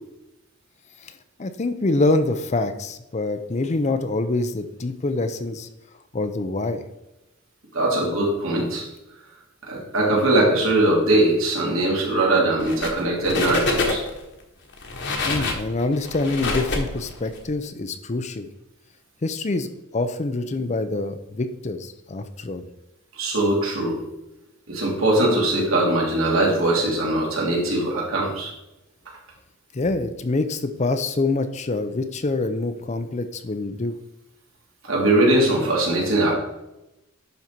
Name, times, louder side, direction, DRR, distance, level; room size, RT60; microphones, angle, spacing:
voice 1, 1.4-5.7 6.1-6.8 15.3-18.5 19.2-22.6 29.7-33.9, left 2 dB, 35° left, 10 dB, 0.5 m, -25 dB
voice 2, 7.7-8.8 9.7-14.0 23.2-24.0 24.7-28.5 34.8-36.3, right 1 dB, 75° right, -3 dB, 2.7 m, -21 dB
sound 1, 12.6-13.0 13.3-14.2 14.7-17.4, left 3 dB, 55° left, 1.3 m, -26 dB
11.0 x 4.1 x 4.5 m, 0.92 s
head